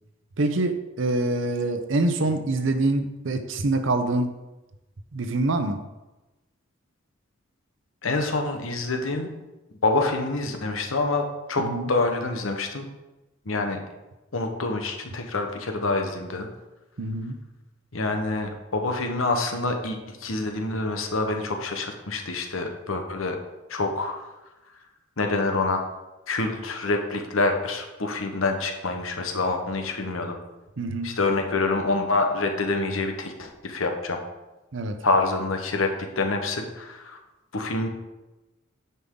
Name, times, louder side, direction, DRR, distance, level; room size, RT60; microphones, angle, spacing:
voice 1, 0.4-4.3 5.1-5.8 11.6-11.9 17.0-17.3 30.8-31.1 34.7-35.0, right 2 dB, 65° right, 8 dB, 0.7 m, -25 dB
voice 2, 8.0-9.3 9.8-12.9 13.5-13.8 14.3-16.5 17.9-23.4 23.7-24.2 25.2-25.8 26.3-30.4 31.0-34.2 35.0-37.2 37.5-37.9, left 3 dB, 80° left, 4 dB, 1.1 m, -26 dB
9.6 x 5.5 x 3.8 m, 1.1 s
head